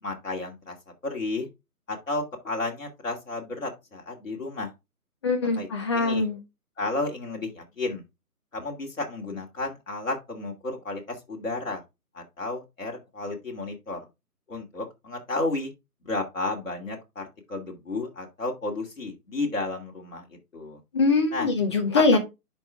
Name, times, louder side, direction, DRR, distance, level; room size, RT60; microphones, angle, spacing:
voice 1, 0.0-0.8 1.0-1.5 1.9-4.7 5.5-5.7 5.9-6.3 6.8-8.0 8.5-11.8 12.1-14.0 14.5-15.7 16.0-20.8 21.3-21.5 21.9-22.2, left 2 dB, 55° left, 2.8 m, -32 dB
voice 2, 5.2-6.4 20.9-22.2, left 3 dB, 20° left, 1.1 m, -22 dB
10.5 x 4.7 x 3.5 m
figure-of-eight pair, 145°, 46 cm